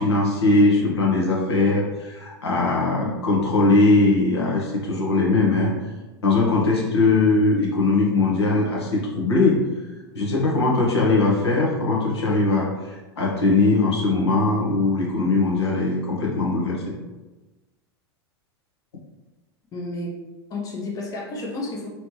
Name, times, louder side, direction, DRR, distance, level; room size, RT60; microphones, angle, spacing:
voice 1, 0.0-5.7 6.2-9.6 10.1-16.9, left 3 dB, 75° left, -3 dB, 1.0 m, -20 dB
voice 2, 19.7-20.2 20.5-21.9, left 2 dB, 25° left, -3 dB, 0.8 m, -31 dB
3.2 x 3.0 x 3.0 m, 1.1 s
figure-of-eight pair, 90°, 14 cm